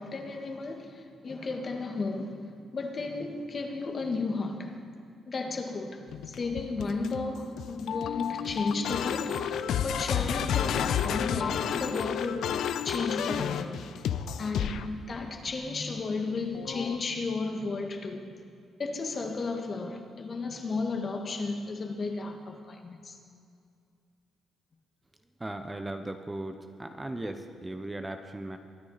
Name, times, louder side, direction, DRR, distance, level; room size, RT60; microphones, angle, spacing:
voice 1, 0.0-4.8 5.3-12.5 12.8-13.8 14.4-18.3 18.8-23.2, left 3 dB, 40° left, 4 dB, 1.6 m, -33 dB
sound 1, 6.1-14.9 16.5-17.0, left 9 dB, 75° left, 0.5 m, -31 dB
voice 2, 25.4-28.6, right 1 dB, 15° right, 6 dB, 0.9 m, -37 dB
23.0 x 9.7 x 4.2 m, 2.4 s
cardioid pair, 90°, 0 cm